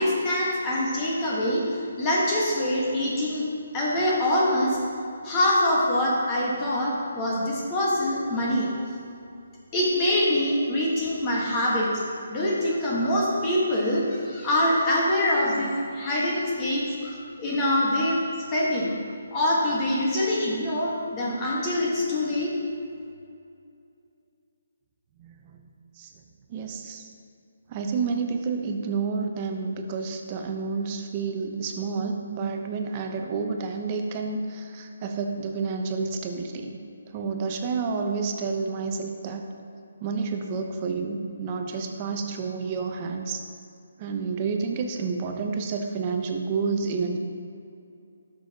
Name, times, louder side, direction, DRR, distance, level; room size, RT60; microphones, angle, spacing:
voice 1, 0.0-3.4 3.7-4.8 5.2-8.7 9.7-11.9 12.3-18.2 18.5-18.9 19.3-22.5, left 1 dB, 20° left, -5 dB, 1.3 m, -24 dB
voice 2, 25.2-25.6 26.0-26.1 26.5-27.1 27.7-36.8 37.1-39.4 40.0-43.4 44.0-47.2, right 4 dB, 30° right, 4 dB, 0.7 m, -29 dB
11.5 x 6.2 x 2.8 m, 2.5 s
hypercardioid pair, 155°, 0 cm